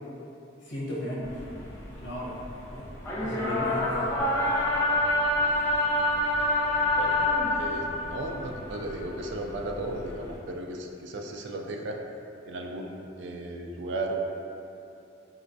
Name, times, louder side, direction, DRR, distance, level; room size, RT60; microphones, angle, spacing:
voice 1, 0.6-1.3 1.9-2.4 2.7-2.9 3.2-4.3, equal, 65° left, -7 dB, 0.9 m, -35 dB
sound 1, 1.2-10.4, left 1 dB, 10° left, 0.4 m, -28 dB
voice 2, 7.6-12.0 12.4-14.2, right 2 dB, 65° right, 1 dB, 0.3 m, -35 dB
4.9 x 2.2 x 2.5 m, 2.8 s
head